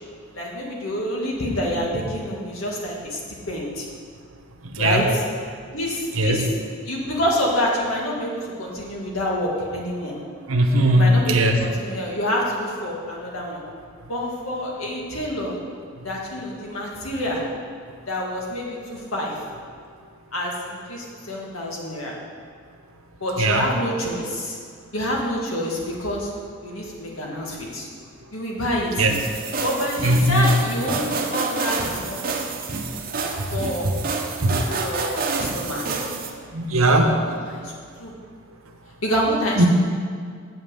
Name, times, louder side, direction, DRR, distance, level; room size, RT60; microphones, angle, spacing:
voice 1, 0.3-3.2 3.5-3.9 4.8-5.2 5.7-6.5 6.9-10.2 10.9-13.6 14.1-15.6 16.0-17.4 18.1-19.3 20.3-22.2 23.2-24.6 24.9-26.3 26.6-27.9 28.3-29.1 29.6-32.2 33.5-33.9 34.7-35.9 37.0-37.2 37.5-37.7 38.0-38.1 39.0-39.7, equal, 85° left, -2 dB, 1.9 m, -27 dB
voice 2, 4.6-5.0 6.2-6.4 10.5-11.6 23.4-23.6 29.0-29.1 30.0-30.5 33.4-33.5 33.8-33.9 34.4-34.6 36.5-37.2 39.6-39.7, right 1 dB, 80° right, 4 dB, 1.0 m, -19 dB
sound 1, 29.1-36.3, right 4 dB, 45° right, 0.8 m, -28 dB
7.7 x 5.5 x 7.6 m, 2.1 s
head